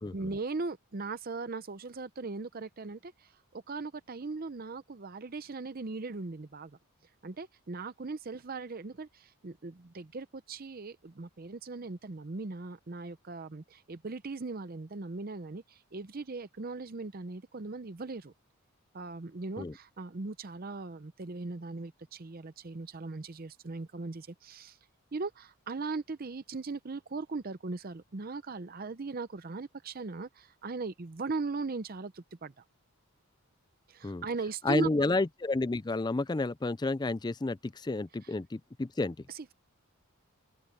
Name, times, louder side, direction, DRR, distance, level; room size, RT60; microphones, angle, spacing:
voice 1, 0.1-6.8 7.2-18.3 18.9-24.8 25.1-32.6 33.9-34.9 38.2-38.4 39.3-39.5, right 3 dB, 40° right, 0.6 m, -39 dB
voice 2, 34.6-39.2, left 2 dB, 20° left, 0.4 m, -30 dB
open air
head